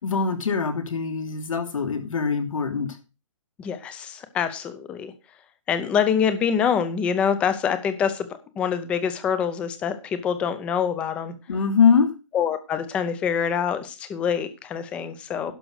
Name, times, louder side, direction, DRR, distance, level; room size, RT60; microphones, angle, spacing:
voice 1, 0.0-2.9 11.5-12.1, left 5 dB, 85° left, 5 dB, 3.0 m, -22 dB
voice 2, 3.6-5.1 5.7-8.3 8.6-11.3 12.3-15.5, left 7 dB, 5° left, 11 dB, 0.5 m, -25 dB
11.5 x 6.2 x 6.3 m, 0.31 s
hypercardioid pair, 175°, 17 cm